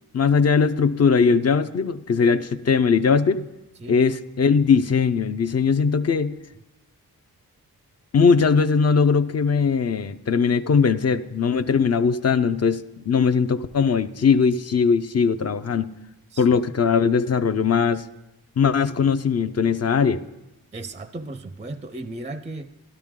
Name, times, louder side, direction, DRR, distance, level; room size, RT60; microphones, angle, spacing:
voice 1, 0.1-3.5 3.9-6.4 8.1-15.9 16.4-18.1 18.6-20.2, left 5 dB, 45° left, 12 dB, 0.5 m, -20 dB
voice 2, 20.7-22.7, right 2 dB, 20° right, 11 dB, 0.4 m, -35 dB
12.5 x 12.0 x 3.7 m, 0.95 s
wide cardioid pair, 80°, 37 cm